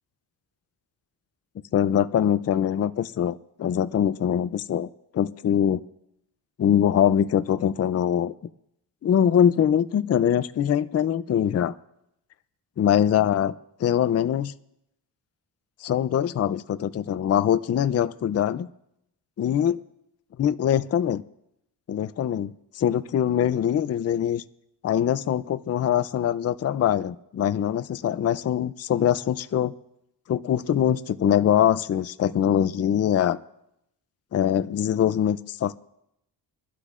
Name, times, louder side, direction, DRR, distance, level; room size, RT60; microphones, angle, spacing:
voice 1, 1.7-4.9 5.1-5.8 6.6-8.3 9.0-11.7 12.8-13.5 13.8-14.5 15.8-18.7 19.4-19.8 20.4-21.2 21.9-24.4 24.8-29.7 30.3-33.4 34.3-35.7, left 9 dB, 35° left, 13 dB, 0.4 m, -23 dB
25.5 x 11.5 x 2.5 m, 0.80 s
cardioid pair, 110°, 45 cm